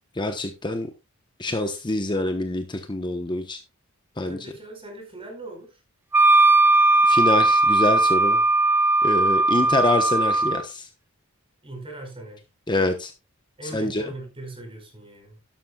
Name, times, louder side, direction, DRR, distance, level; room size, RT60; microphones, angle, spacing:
voice 1, 0.2-0.9 1.4-3.6 4.2-4.4 7.1-8.4 9.0-10.9 12.7-13.1 13.7-14.0, left 2 dB, 20° left, 1.0 m, -26 dB
voice 2, 4.3-5.8 9.6-9.7 11.6-12.4 13.6-15.4, right 2 dB, 25° right, 4.9 m, -40 dB
Wind instrument woodwind instrument, 6.1-10.6, right 2 dB, 10° right, 0.5 m, -18 dB
12.0 x 12.0 x 2.4 m
head